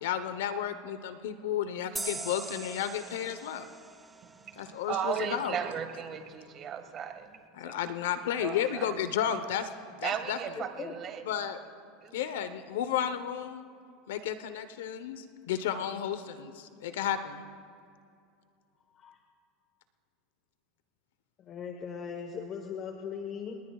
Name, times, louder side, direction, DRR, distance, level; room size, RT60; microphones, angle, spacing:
voice 1, 0.0-3.7 4.6-5.6 7.6-9.7 10.0-10.4 11.3-11.6 12.1-13.7 14.1-17.4, left 9 dB, 85° left, 10 dB, 0.9 m, -32 dB
sound 1, 2.0-5.3, right 3 dB, 10° right, 0.5 m, -42 dB
voice 2, 4.2-7.4 7.6-7.8 8.4-8.9 10.0-11.2 12.0-12.1, right 8 dB, 35° right, 6 dB, 1.7 m, -36 dB
voice 3, 10.6-10.9 18.9-19.2 21.4-23.6, left 6 dB, 35° left, 4 dB, 1.2 m, -39 dB
28.5 x 20.0 x 2.4 m, 2.4 s
supercardioid pair, 135°, 0 cm